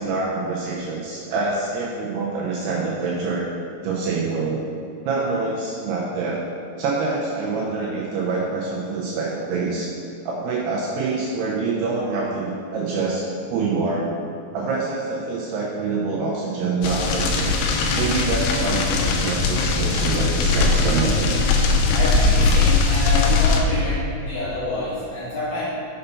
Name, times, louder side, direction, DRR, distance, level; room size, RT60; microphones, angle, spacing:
voice 1, 0.0-3.4 3.8-4.6 5.1-6.4 6.8-9.9 10.3-14.1 14.5-17.6 18.0-21.4, right 4 dB, 80° right, -4 dB, 2.4 m, -26 dB
sound 1, 16.8-23.6, left 3 dB, 85° left, 2.4 m, -20 dB
voice 2, 21.9-25.7, left 2 dB, 65° left, -9 dB, 2.3 m, -27 dB
6.8 x 5.6 x 5.5 m, 2.5 s
omnidirectional pair, 5.4 m